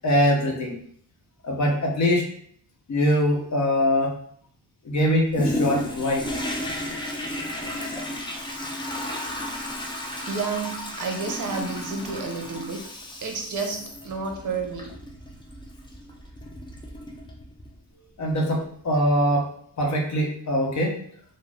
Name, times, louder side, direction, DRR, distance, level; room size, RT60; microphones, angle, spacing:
voice 1, 0.0-0.8 1.4-2.3 2.9-4.1 4.8-6.3 18.2-19.5 19.8-21.0, equal, 45° left, -1 dB, 0.8 m, -22 dB
Toilet flush, 5.3-17.8 18.3-18.4, left 1 dB, 15° left, 0.3 m, -33 dB
voice 2, 10.3-12.8 13.2-14.9, right 4 dB, 50° right, 3 dB, 0.7 m, -30 dB
2.4 x 2.1 x 3.2 m, 0.62 s
cardioid pair, 110°, 41 cm